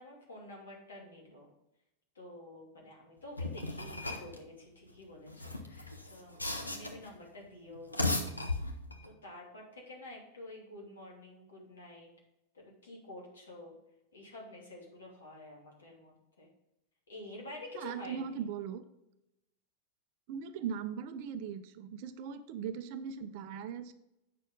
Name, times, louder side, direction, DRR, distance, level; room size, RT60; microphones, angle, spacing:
voice 1, 0.0-1.5 2.1-8.5 9.0-12.1 12.5-13.7 14.1-16.5 17.1-18.3, left 1 dB, 70° left, -1 dB, 2.8 m, -49 dB
sound 1, 3.4-4.4 5.3-7.1 7.8-9.1, left 2 dB, 85° left, 1.0 m, -36 dB
voice 2, 17.7-18.8 20.3-23.9, right 7 dB, 45° right, 11 dB, 0.6 m, -39 dB
8.4 x 6.3 x 3.8 m, 0.87 s
figure-of-eight pair, 90°, 0 cm